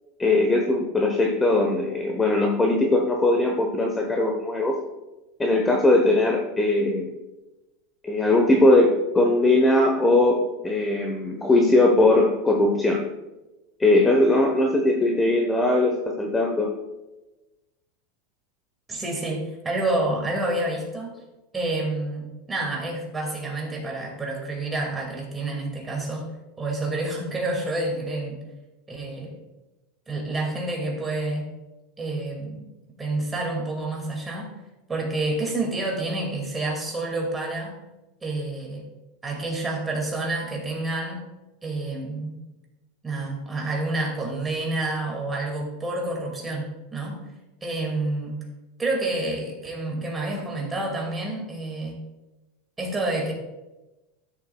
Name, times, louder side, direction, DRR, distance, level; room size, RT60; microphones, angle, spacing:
voice 1, 0.2-4.8 5.4-7.1 8.0-13.0 13.8-16.7, left 2 dB, 10° left, 1 dB, 0.8 m, -20 dB
voice 2, 18.9-21.1 21.5-26.3 26.6-28.4 28.9-29.3 30.1-31.5 32.0-32.6 33.0-34.5 34.9-37.7 38.2-38.9 39.2-41.3 41.6-42.4 43.0-47.2 47.6-48.4 48.8-52.0 52.8-53.3, right 2 dB, 15° right, 0 dB, 2.1 m, -28 dB
12.5 x 7.2 x 2.3 m, 1.1 s
supercardioid pair, 150°, 0 cm